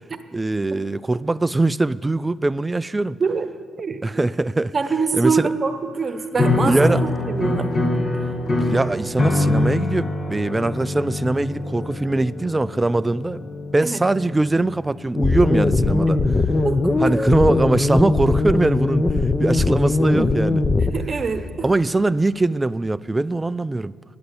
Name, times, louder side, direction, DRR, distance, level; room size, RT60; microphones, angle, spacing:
voice 1, 0.3-3.2 4.0-4.7 5.1-5.5 6.6-7.0 8.4-13.5 13.7-16.2 17.0-19.1 19.4-20.7 21.6-23.9, right 2 dB, 15° right, 0.3 m, -21 dB
voice 2, 4.7-7.7 13.8-14.0 16.6-16.9 20.9-21.7, right 4 dB, 35° right, 1.0 m, -24 dB
sound 1, 6.3-14.7, left 2 dB, 40° left, 1.5 m, -24 dB
sound 2, 15.2-20.9, left 2 dB, 25° left, 0.7 m, -20 dB
11.5 x 8.5 x 9.6 m
cardioid pair, 90°, 0 cm